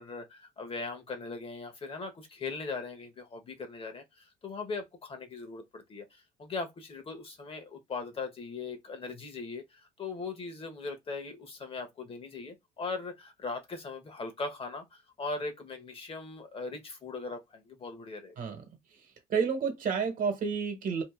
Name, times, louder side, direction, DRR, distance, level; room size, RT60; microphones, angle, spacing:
voice 1, 0.0-18.4, left 4 dB, 35° left, 1.0 m, -39 dB
voice 2, 19.3-21.0, right 6 dB, 55° right, 1.2 m, -30 dB
2.8 x 2.5 x 3.6 m
cardioid pair, 110°, 17 cm